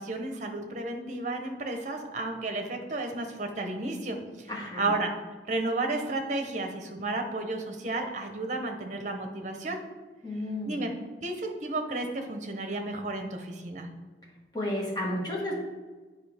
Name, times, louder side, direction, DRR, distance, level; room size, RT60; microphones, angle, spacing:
voice 1, 0.0-4.5 4.8-5.1 5.5-9.8 10.7-10.9 11.2-13.9, right 2 dB, 45° right, 4 dB, 0.9 m, -32 dB
voice 2, 4.5-4.8 10.2-10.8 14.5-15.5, left 1 dB, 20° left, -4 dB, 1.6 m, -32 dB
8.6 x 5.2 x 3.5 m, 1.3 s
head